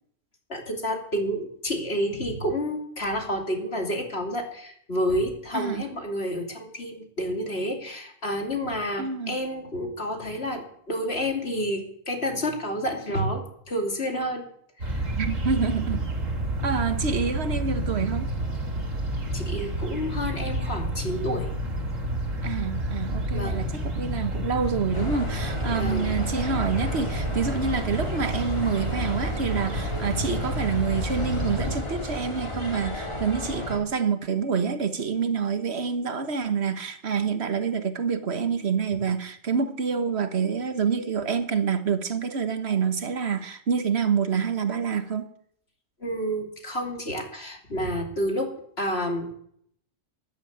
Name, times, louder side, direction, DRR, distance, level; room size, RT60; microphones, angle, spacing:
voice 1, 0.5-14.4 14.8-15.1 19.3-21.5 23.3-23.6 25.7-26.1 46.0-49.3, equal, 50° left, 3.0 m, -29 dB
voice 2, 9.0-9.4 15.2-16.1 16.6-18.3 22.4-45.3, right 6 dB, 55° right, 1.5 m, -27 dB
sound 1, 14.8-31.8, right 1 dB, 85° right, 3.3 m, -30 dB
sound 2, 24.9-33.8, left 1 dB, 20° left, 2.5 m, -34 dB
13.0 x 11.5 x 8.1 m
omnidirectional pair, 1.3 m